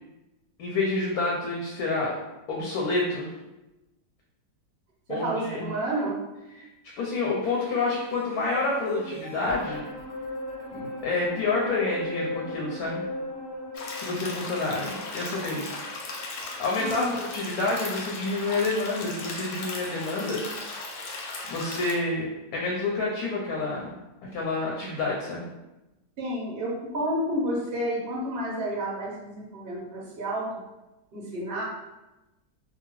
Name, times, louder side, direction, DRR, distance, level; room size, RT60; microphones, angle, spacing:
voice 1, 0.6-2.1 2.5-3.3 5.1-5.7 6.6-6.7 7.0-9.9 10.7-13.0 13.9-15.7 16.4-20.4 21.5-22.3 22.5-23.9 24.3-25.5, left 3 dB, 70° left, -3 dB, 1.0 m, -28 dB
voice 2, 5.1-6.1 16.8-17.1 26.2-30.5 31.1-31.6, right 1 dB, 55° right, -4 dB, 0.7 m, -30 dB
sound 1, 7.4-17.8 18.2-18.3, left 1 dB, 30° left, 0.8 m, -38 dB
sound 2, 13.7-21.9, left 3 dB, 90° left, 1.3 m, -37 dB
2.7 x 2.2 x 3.0 m, 1.0 s
omnidirectional pair, 1.8 m